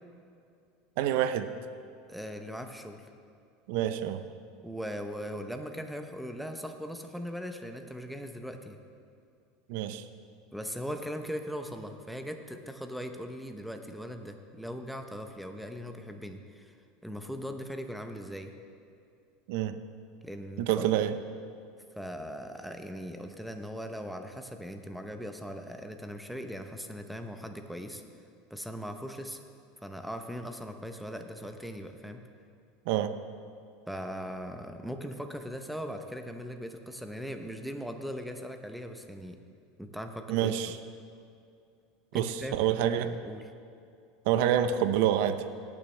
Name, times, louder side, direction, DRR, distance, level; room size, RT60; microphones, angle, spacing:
voice 1, 1.0-1.5 3.7-4.2 9.7-10.1 19.5-19.8 20.6-21.2 32.9-33.1 40.3-40.8 42.1-43.2 44.3-45.5, right 10 dB, 65° right, 11 dB, 0.6 m, -27 dB
voice 2, 2.1-3.0 4.6-8.8 10.5-16.7 17.0-18.5 20.2-21.0 22.0-28.0 28.5-29.4 29.8-32.2 33.9-39.4 39.8-40.6 42.1-43.5, equal, ahead, 5 dB, 0.7 m, -39 dB
17.5 x 8.6 x 3.3 m, 2.4 s
supercardioid pair, 140°, 0 cm